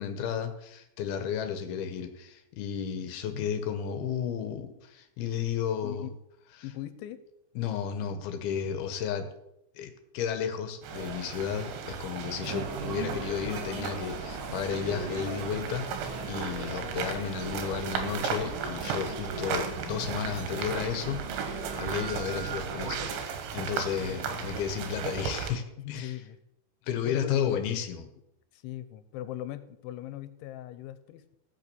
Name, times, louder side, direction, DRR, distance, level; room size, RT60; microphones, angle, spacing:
voice 1, 0.0-6.1 7.6-9.3 9.8-26.1 26.9-28.0, left 8 dB, 70° left, 8 dB, 2.6 m, -33 dB
voice 2, 5.8-6.1 6.6-7.2 16.7-17.1 24.0-24.5 25.8-26.4 27.0-27.6 28.5-31.4, left 13 dB, 90° left, 12 dB, 3.2 m, -40 dB
sound 1, 10.8-25.5, right 7 dB, 75° right, 3.6 m, -36 dB
sound 2, 12.5-23.1, right 3 dB, 60° right, 1.3 m, -39 dB
15.0 x 6.2 x 6.9 m, 0.81 s
omnidirectional pair, 5.3 m